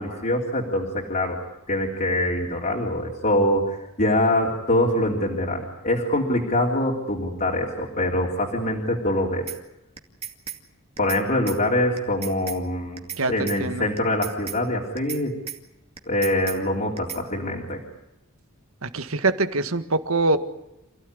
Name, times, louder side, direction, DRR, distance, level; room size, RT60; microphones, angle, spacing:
voice 1, 0.0-1.4 1.7-9.5 11.0-13.0 13.3-15.3 16.1-17.8, left 1 dB, 40° left, -3 dB, 3.5 m, -24 dB
sound 1, 9.5-9.6 10.0-10.6 11.0-11.2 11.5-11.6 12.0-12.6 13.0-13.2 13.5-13.6 14.0-14.6 15.0-15.2 15.5-15.6 16.0-16.6 17.0-17.2, right 8 dB, 30° right, 2.4 m, -34 dB
voice 2, 13.2-13.9 18.8-20.4, right 2 dB, 70° right, 10 dB, 1.8 m, -24 dB
28.5 x 16.5 x 9.8 m, 0.88 s
head